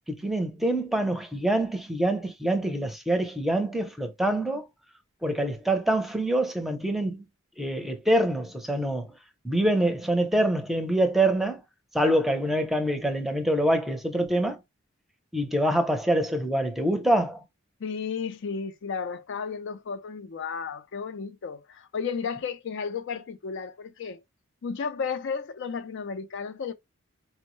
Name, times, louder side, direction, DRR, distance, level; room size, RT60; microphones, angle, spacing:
voice 1, 0.1-4.7 5.2-7.2 7.6-9.1 9.4-11.6 11.9-14.6 15.3-17.4, right 1 dB, ahead, 0.6 m, -25 dB
voice 2, 17.8-24.2 24.6-26.7, left 5 dB, 60° left, 0.4 m, -33 dB
4.3 x 2.0 x 3.0 m
head